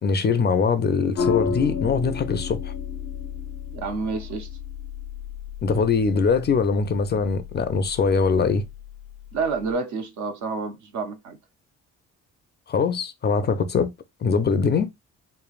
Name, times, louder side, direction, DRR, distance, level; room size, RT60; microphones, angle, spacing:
voice 1, 0.0-2.7 5.6-8.6 12.7-13.9 14.2-14.9, left 5 dB, 35° left, 0.4 m, -22 dB
sound 1, 1.2-9.7, left 6 dB, 85° left, 0.7 m, -33 dB
voice 2, 3.7-4.5 9.3-11.4, right 4 dB, 70° right, 0.8 m, -29 dB
3.1 x 2.0 x 2.4 m
cardioid pair, 90°, 30 cm